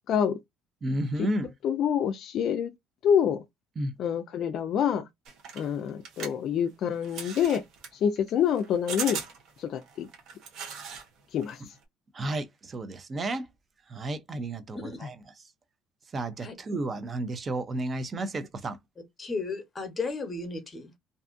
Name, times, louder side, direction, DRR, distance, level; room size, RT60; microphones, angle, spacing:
voice 1, 0.1-0.4 1.2-1.3 1.6-2.7 3.0-3.4 4.0-5.1 5.5-7.6 8.0-9.2 9.6-10.1 11.3-11.6, left 8 dB, 55° left, 0.3 m, -26 dB
voice 2, 0.8-1.5 3.8-3.9 12.1-13.5 13.9-15.1 16.1-18.8, right 1 dB, 30° right, 0.5 m, -32 dB
sound 1, 5.2-11.1 11.4-11.8, right 6 dB, 65° right, 0.8 m, -39 dB
voice 3, 19.2-20.9, left 4 dB, 25° left, 0.9 m, -34 dB
2.5 x 2.4 x 2.4 m
cardioid pair, 115°, 0 cm